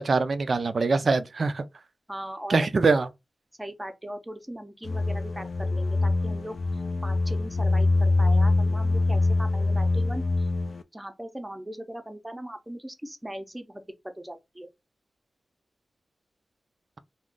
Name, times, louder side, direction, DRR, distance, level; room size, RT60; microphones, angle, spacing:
voice 1, 0.0-1.6 2.5-3.1, right 4 dB, 55° right, 0.3 m, -23 dB
voice 2, 2.1-2.8 3.6-6.6 7.0-10.5 10.9-13.8 14.2-14.7, right 1 dB, 15° right, 0.6 m, -39 dB
sound 1, 4.8-10.8, left 2 dB, 60° left, 0.3 m, -24 dB
2.4 x 2.2 x 3.5 m
wide cardioid pair, 80°, 0 cm